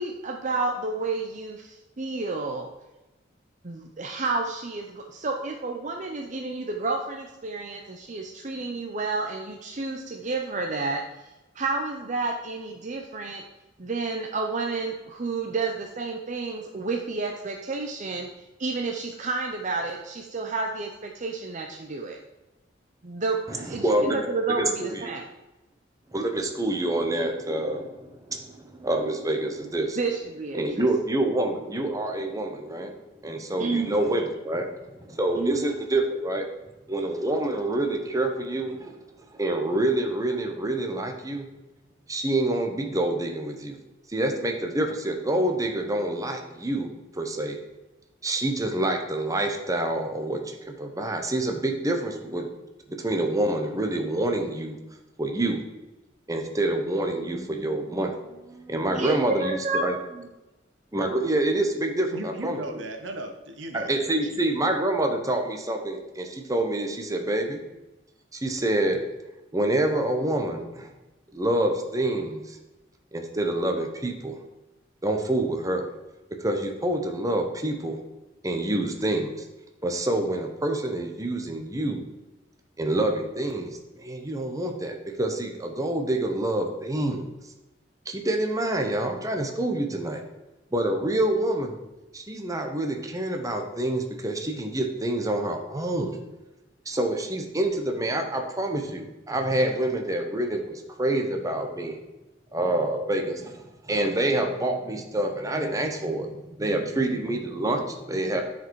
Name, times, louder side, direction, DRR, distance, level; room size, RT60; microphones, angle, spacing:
voice 1, 0.0-2.7 3.6-11.3 11.5-13.4 13.8-18.3 18.6-22.2 23.0-25.2 30.0-30.6 33.6-34.0 35.4-35.7 58.9-59.9, right 3 dB, 40° right, 2 dB, 0.7 m, -30 dB
voice 2, 23.5-25.1 26.1-30.0 30.5-32.9 33.2-34.7 35.0-36.5 36.9-39.0 39.3-41.5 42.1-43.8 44.1-47.6 48.2-52.5 53.0-54.8 55.2-55.6 56.3-59.9 60.9-62.6 63.7-67.6 68.3-69.0 69.5-70.9 71.3-72.6 73.1-74.4 75.0-75.9 76.4-78.0 78.4-79.4 79.8-82.0 82.8-87.3 88.1-90.2 90.7-91.8 92.1-96.2 96.8-102.0 102.5-108.4, right 1 dB, 20° right, 3 dB, 1.0 m, -27 dB
voice 3, 62.1-64.7, right 1 dB, 80° right, 5 dB, 1.2 m, -38 dB
9.9 x 5.0 x 4.7 m, 1.0 s
head